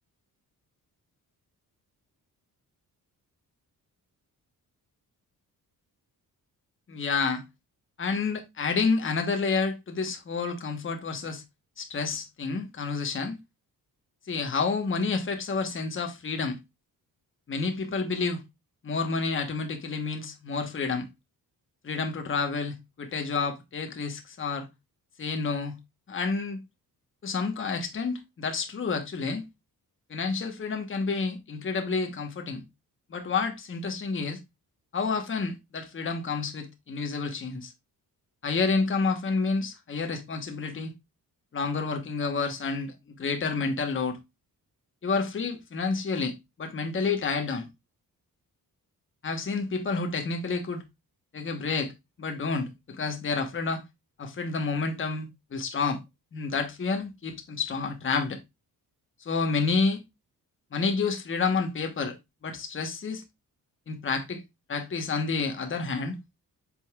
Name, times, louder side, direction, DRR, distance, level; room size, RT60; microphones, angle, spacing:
voice 1, 6.9-7.4 8.0-11.4 11.8-13.4 14.3-16.6 17.5-18.4 18.8-21.1 21.8-24.7 25.2-25.8 26.1-26.6 27.2-29.4 30.1-32.6 33.1-34.4 34.9-37.7 38.4-40.9 41.5-44.2 45.0-47.7 49.2-50.8 51.3-51.9 52.2-53.8 54.2-56.0 56.3-58.4 59.2-60.0 60.7-62.2 62.4-63.2 63.9-64.4 64.7-66.2, left 4 dB, 35° left, 1.2 m, -29 dB
7.7 x 5.4 x 2.4 m
wide cardioid pair, 160°, 36 cm